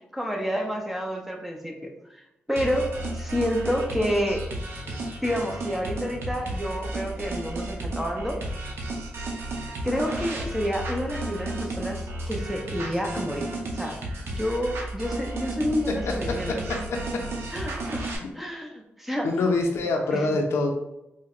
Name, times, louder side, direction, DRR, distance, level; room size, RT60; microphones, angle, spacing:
voice 1, 0.1-2.2 2.5-4.4 4.9-8.4 9.8-13.5 13.7-14.0 14.3-16.6 17.5-18.0 18.3-18.7 19.0-19.3 20.1-20.4, equal, 5° right, 1 dB, 0.6 m, -29 dB
sound 1, 2.6-18.2, right 1 dB, 70° right, 0.7 m, -33 dB
voice 2, 19.2-20.7, left 3 dB, 85° left, 3 dB, 0.5 m, -25 dB
4.4 x 2.1 x 2.5 m, 0.89 s
cardioid pair, 90°, 4 cm